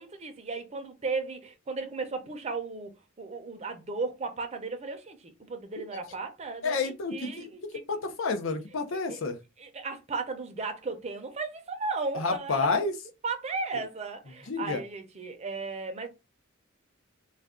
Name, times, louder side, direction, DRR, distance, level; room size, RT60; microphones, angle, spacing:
voice 1, 0.0-5.2 5.5-7.6 8.9-9.2 9.6-12.7 13.2-16.1, right 4 dB, 30° right, 0.6 m, -35 dB
voice 2, 6.6-9.4 12.1-12.9 14.5-14.8, left 4 dB, 70° left, 0.6 m, -30 dB
2.4 x 2.3 x 3.5 m
head